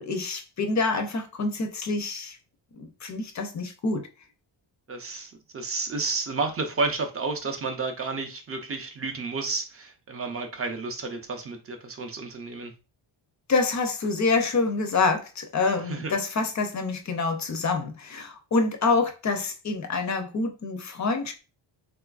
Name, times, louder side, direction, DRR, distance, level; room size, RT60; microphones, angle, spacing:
voice 1, 0.0-2.4 2.8-4.1 13.5-21.3, left 3 dB, 40° left, 0.4 m, -26 dB
voice 2, 4.9-12.7 15.8-16.1, right 3 dB, 30° right, 0.4 m, -31 dB
3.8 x 2.4 x 2.3 m
wide cardioid pair, 170°, 48 cm